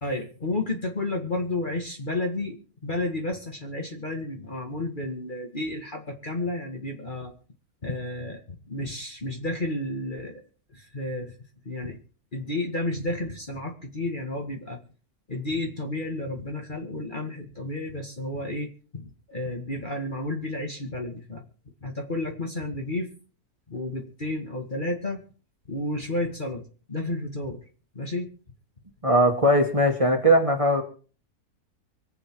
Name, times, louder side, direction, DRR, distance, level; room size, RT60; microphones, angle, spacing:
voice 1, 0.0-2.6 2.8-7.3 7.8-10.4 10.7-11.3 11.7-12.0 12.3-14.8 15.3-21.4 21.8-23.1 23.7-25.2 25.7-27.6 28.0-28.3, left 2 dB, 30° left, 2 dB, 2.1 m, -31 dB
voice 2, 29.0-30.8, right 1 dB, 20° right, 3 dB, 2.3 m, -20 dB
25.0 x 8.5 x 4.7 m, 0.39 s
omnidirectional pair, 1.6 m